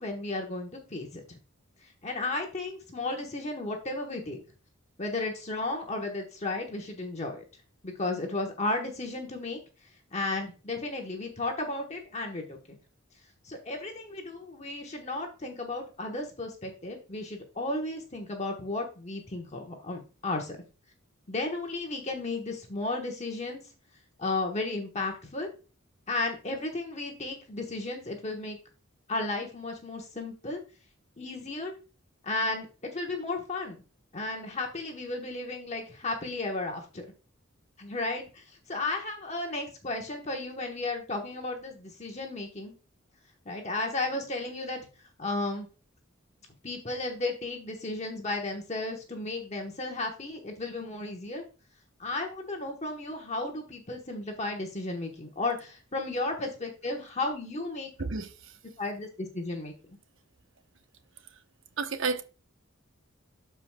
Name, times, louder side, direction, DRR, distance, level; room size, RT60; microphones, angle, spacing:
voice 1, 0.0-1.4 1.8-4.4 5.0-7.4 7.8-9.6 10.1-12.6 13.4-20.6 21.3-23.6 24.2-25.5 26.1-28.6 29.1-30.6 31.2-31.7 32.2-33.8 34.1-37.1 37.8-42.7 43.4-44.8 45.2-45.7 46.6-51.4 52.0-57.9 58.8-59.7, left 2 dB, 35° left, 1.1 m, -34 dB
voice 2, 61.8-62.2, right 4 dB, 65° right, 0.9 m, -30 dB
13.0 x 4.7 x 2.2 m
head